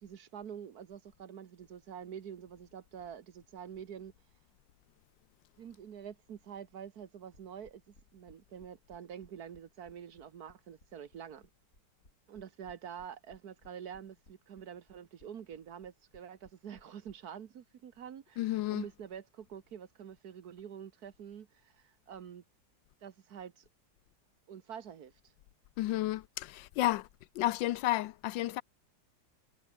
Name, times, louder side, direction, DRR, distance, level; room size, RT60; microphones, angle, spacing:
voice 1, 0.0-4.1 5.6-11.5 12.3-22.4 23.0-23.6 24.5-25.3, right 8 dB, 60° right, 1.5 m, -47 dB
sound 1, 7.3-17.1, left 1 dB, 40° left, 8.1 m, -62 dB
voice 2, 18.4-18.8 25.8-27.1 27.3-28.6, left 15 dB, 85° left, 1.3 m, -31 dB
omnidirectional pair, 2.0 m